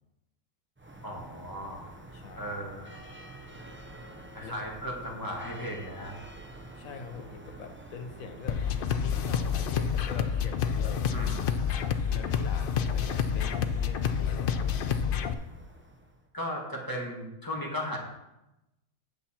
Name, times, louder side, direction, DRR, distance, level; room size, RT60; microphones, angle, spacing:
sound 1, 0.8-16.2, right 2 dB, 20° right, 0.3 m, -47 dB
voice 1, 1.0-1.9 2.4-2.9 4.3-6.1 11.1-11.5 16.3-18.0, equal, 15° left, -2 dB, 1.7 m, -36 dB
voice 2, 2.1-2.6 4.4-4.5 6.7-8.7 8.9-11.5 12.1-15.1, left 5 dB, 65° left, 6 dB, 1.3 m, -44 dB
sound 2, 8.5-15.3, left 7 dB, 85° left, 0.4 m, -28 dB
8.4 x 7.1 x 4.3 m, 0.93 s
omnidirectional pair, 1.6 m